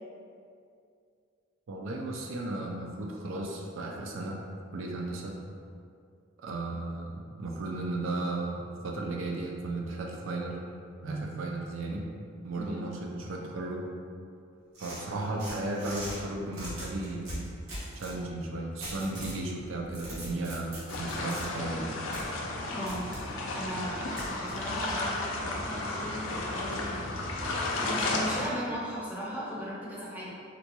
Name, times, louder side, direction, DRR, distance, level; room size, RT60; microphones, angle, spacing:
voice 1, 1.7-4.4 4.7-5.3 6.4-10.6 11.0-12.0 12.4-13.9 14.8-17.5 18.0-22.0, right 2 dB, 70° right, 0 dB, 0.4 m, -35 dB
sound 1, 14.7-16.2 16.5-18.2 18.8-19.4 19.8-21.4 22.1-22.2 22.9-23.2 24.2-24.3, right 1 dB, 85° right, 1.2 m, -40 dB
sound 2, 20.9-28.5, left 2 dB, 65° left, 0.4 m, -33 dB
voice 2, 22.7-23.1 23.5-27.3 27.8-30.3, equal, 10° right, -7 dB, 0.6 m, -37 dB
3.9 x 2.2 x 2.9 m, 2.4 s
head